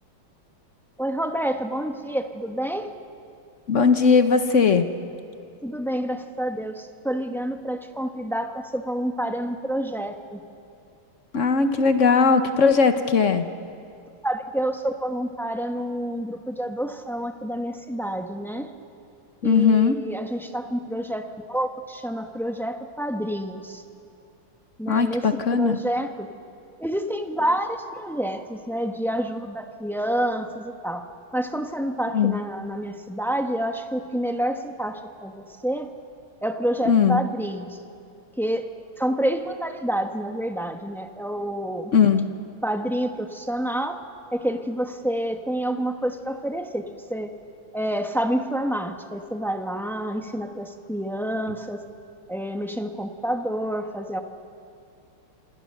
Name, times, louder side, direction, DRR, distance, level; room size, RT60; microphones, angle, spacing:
voice 1, 1.0-2.9 5.6-10.4 14.2-18.7 19.4-23.8 24.8-25.2 25.5-26.3 26.8-31.1 31.3-35.9 36.4-37.8 38.4-38.7 39.0-41.9 42.6-44.0 44.3-47.3 47.7-51.8 52.3-54.2, right 1 dB, ahead, 5 dB, 0.4 m, -28 dB
voice 2, 3.7-4.9 11.3-13.5 19.4-20.0 24.9-25.8 32.1-32.4 36.9-37.2 41.9-42.3, left 5 dB, 50° left, 8 dB, 1.0 m, -19 dB
27.0 x 27.0 x 6.6 m, 2.5 s
omnidirectional pair, 2.3 m